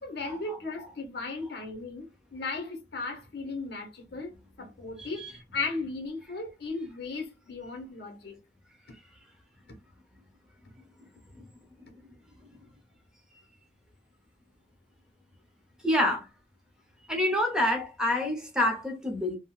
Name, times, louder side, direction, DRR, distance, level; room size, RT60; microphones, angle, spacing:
voice 1, 0.0-2.1 2.3-8.4, left 3 dB, 60° left, 1.1 m, -36 dB
voice 2, 5.0-5.3 15.8-16.3 17.1-19.4, left 1 dB, 5° right, 0.8 m, -27 dB
3.8 x 2.2 x 2.4 m
head